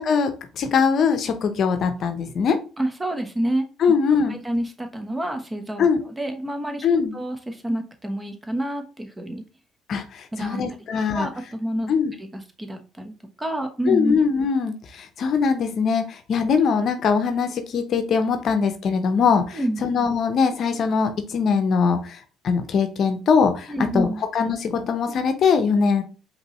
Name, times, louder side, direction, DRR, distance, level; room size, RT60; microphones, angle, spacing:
voice 1, 0.1-2.6 3.8-4.3 5.8-6.0 6.8-7.1 9.9-11.3 11.9-12.1 13.9-26.0, left 5 dB, 55° left, 7 dB, 0.7 m, -22 dB
voice 2, 2.8-3.7 4.1-6.9 7.1-9.4 10.3-10.6 11.1-11.9 12.2-14.2 19.5-19.8 23.7-24.2, right 1 dB, 15° right, 5 dB, 1.0 m, -28 dB
5.1 x 3.1 x 3.1 m, 0.35 s
hypercardioid pair, 65°, 0 cm